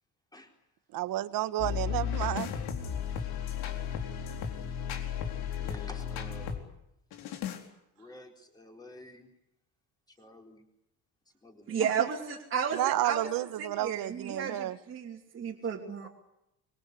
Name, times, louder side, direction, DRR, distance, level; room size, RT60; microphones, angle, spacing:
voice 1, 0.9-2.5 12.7-14.8, right 14 dB, 60° right, 14 dB, 1.4 m, -31 dB
sound 1, 1.6-6.6 7.1-7.6, left 8 dB, 75° left, 4.3 m, -34 dB
voice 2, 5.5-6.7 8.0-9.3 10.2-10.6 11.4-11.8 16.0-16.1, left 1 dB, 10° left, 2 dB, 4.2 m, -50 dB
voice 3, 11.7-16.1, right 7 dB, 35° right, -3 dB, 3.0 m, -33 dB
25.5 x 22.5 x 8.3 m, 0.83 s
cardioid pair, 175°, 38 cm